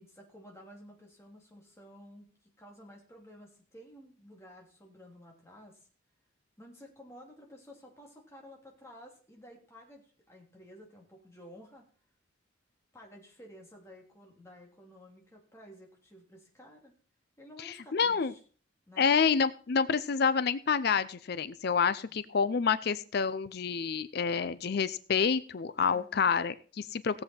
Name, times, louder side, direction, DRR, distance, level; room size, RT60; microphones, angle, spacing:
voice 1, 0.0-5.9 6.6-11.9 12.9-16.9 17.4-18.4 18.9-19.2 22.0-22.1 25.9-26.2, equal, 15° left, 0 dB, 3.0 m, -53 dB
voice 2, 17.6-18.3 19.0-27.2, left 6 dB, 55° left, 15 dB, 0.5 m, -28 dB
17.5 x 7.7 x 4.4 m, 0.42 s
head